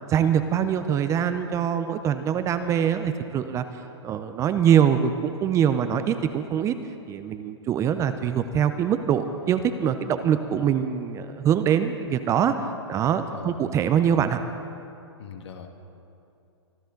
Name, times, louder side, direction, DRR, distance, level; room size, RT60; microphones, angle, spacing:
voice 1, 0.1-3.6 4.0-6.8 7.1-12.5 12.9-14.4, right 8 dB, 20° right, 10 dB, 0.6 m, -23 dB
voice 2, 13.3-13.6 15.2-15.7, left 7 dB, 65° left, 4 dB, 2.0 m, -40 dB
24.5 x 12.5 x 3.9 m, 2.7 s
hypercardioid pair, 130°, 15 cm